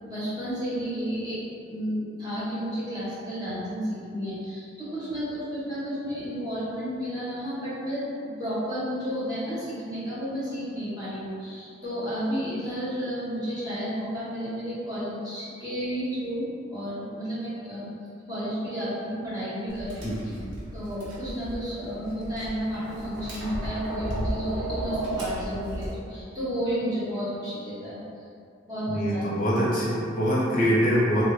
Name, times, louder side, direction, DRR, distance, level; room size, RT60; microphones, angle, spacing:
voice 1, 0.0-1.4 1.7-17.9 18.3-20.2 20.7-28.0 28.7-29.2, equal, 20° right, -12 dB, 1.1 m, -32 dB
Tap, 19.7-25.9, right 1 dB, 80° right, 0.9 m, -34 dB
voice 2, 20.0-20.4 28.9-31.2, equal, 45° left, -7 dB, 0.7 m, -24 dB
3.2 x 2.4 x 3.2 m, 2.5 s
head